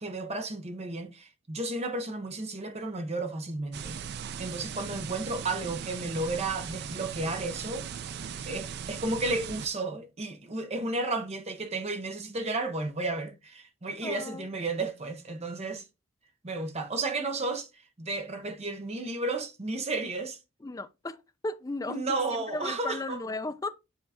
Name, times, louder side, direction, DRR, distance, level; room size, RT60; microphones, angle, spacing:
voice 1, 0.0-4.0 4.4-7.9 8.5-15.8 16.4-17.7 18.0-20.4 21.9-23.2, right 2 dB, 30° right, 0.8 m, -33 dB
sound 1, 3.7-9.7, right 7 dB, 50° right, 0.3 m, -38 dB
voice 2, 14.0-14.5 20.6-21.2 21.4-22.2 22.5-23.7, left 2 dB, 15° left, 0.4 m, -35 dB
9.8 x 3.7 x 2.7 m
head